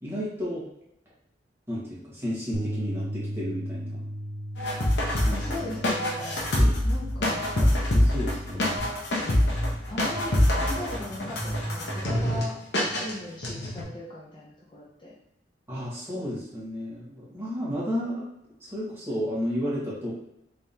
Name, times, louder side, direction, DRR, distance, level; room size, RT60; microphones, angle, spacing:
voice 1, 0.0-0.7 1.7-4.0 5.2-5.8 6.5-6.7 7.5-8.9 15.7-18.3 18.6-20.1, equal, 15° right, -8 dB, 1.4 m, -32 dB
Bass guitar, 2.5-8.8, equal, 40° right, 0.4 m, -37 dB
sound 1, 4.6-12.4 12.7-13.1 13.4-13.8, left 1 dB, 70° left, 0.8 m, -25 dB
voice 2, 5.3-6.5 6.8-7.5 9.9-12.5 13.0-15.1, left 2 dB, 25° left, -5 dB, 0.5 m, -39 dB
sound 2, 6.2-12.3, right 1 dB, 85° left, 1.3 m, -38 dB
3.4 x 3.4 x 2.8 m, 0.80 s
head